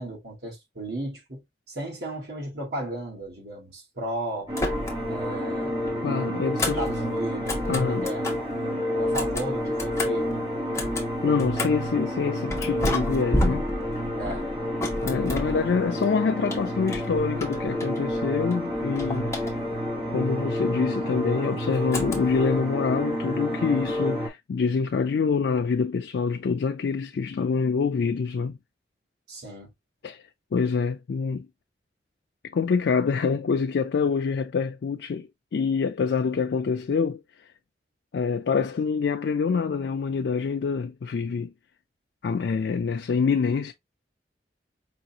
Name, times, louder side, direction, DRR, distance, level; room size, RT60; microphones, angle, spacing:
voice 1, 0.0-4.5 5.1-5.8 6.8-8.3 8.6-10.5 10.7-10.9 14.2-14.5 29.3-29.7, right 1 dB, 70° right, 1.7 m, -35 dB
sound 1, 4.5-5.2 5.5-8.5 9.0-11.9 12.5-16.1 16.5-18.2 18.5-19.9 21.9-22.5, left 1 dB, 15° left, 0.9 m, -32 dB
sound 2, 4.5-24.3, equal, 25° right, 1.3 m, -29 dB
voice 2, 6.0-6.8 7.7-8.1 11.2-13.7 15.0-19.5 20.1-28.6 30.0-30.2 30.5-31.5 32.5-37.2 38.1-41.5 42.2-43.7, left 5 dB, 75° left, 0.4 m, -26 dB
5.0 x 2.5 x 2.7 m
head